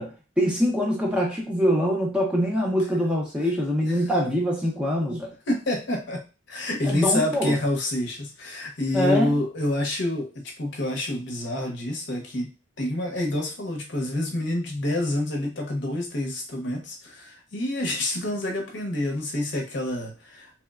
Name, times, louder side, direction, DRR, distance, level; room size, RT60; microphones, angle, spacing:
voice 1, 0.0-5.3 6.8-7.6 8.9-9.3, equal, 5° right, -2 dB, 0.5 m, -24 dB
voice 2, 5.5-12.5 12.8-20.5, left 1 dB, 60° left, 2 dB, 0.7 m, -28 dB
3.0 x 2.0 x 2.3 m, 0.31 s
head